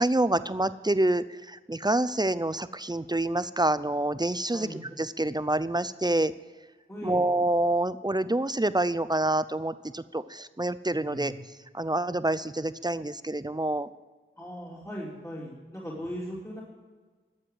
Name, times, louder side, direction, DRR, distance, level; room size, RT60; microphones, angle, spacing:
voice 1, 0.0-4.7 5.0-6.3 7.0-11.3 11.7-13.9, right 1 dB, 20° right, 14 dB, 0.5 m, -27 dB
voice 2, 4.5-4.8 6.9-7.2 11.1-11.3 14.3-16.6, equal, 15° left, -5 dB, 3.1 m, -38 dB
12.5 x 7.5 x 9.2 m, 1.4 s
wide cardioid pair, 40°, 21 cm